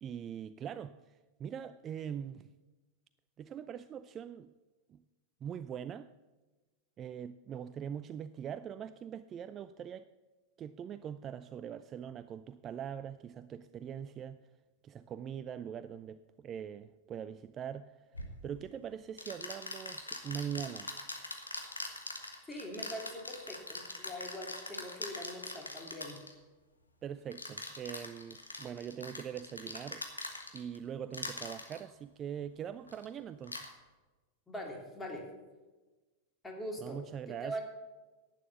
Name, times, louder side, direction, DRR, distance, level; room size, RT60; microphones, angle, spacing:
voice 1, 0.0-2.5 3.4-4.5 4.9-5.0 5.4-6.1 7.0-10.1 10.6-14.4 14.8-18.1 18.4-20.9 27.0-30.0 30.5-33.7 36.8-37.6, right 8 dB, 30° right, 0.3 m, -42 dB
sound 1, 18.1-18.3 19.2-26.3 27.3-30.8 31.1-31.8 32.9-33.1 33.4-33.7, left 2 dB, 80° left, 1.5 m, -42 dB
voice 2, 22.5-26.2 34.5-35.2 36.4-37.0 37.3-37.6, equal, 10° left, 2.6 m, -42 dB
11.0 x 9.0 x 7.1 m
figure-of-eight pair, 90°, 0 cm